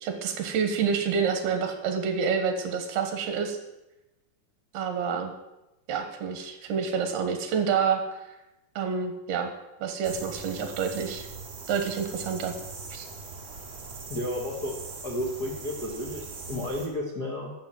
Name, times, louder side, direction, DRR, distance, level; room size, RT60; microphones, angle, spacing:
voice 1, 0.0-3.6 4.7-5.3 5.9-8.2 8.8-9.5 9.8-11.3 11.7-12.5 12.9-13.1, right 6 dB, 75° right, 5 dB, 3.4 m, -28 dB
sound 1, 10.0-16.9, right 4 dB, 40° right, 2.1 m, -41 dB
voice 2, 14.1-14.7 15.0-17.5, left 1 dB, 45° left, -1 dB, 1.2 m, -32 dB
12.0 x 7.7 x 7.6 m, 0.96 s
omnidirectional pair, 4.6 m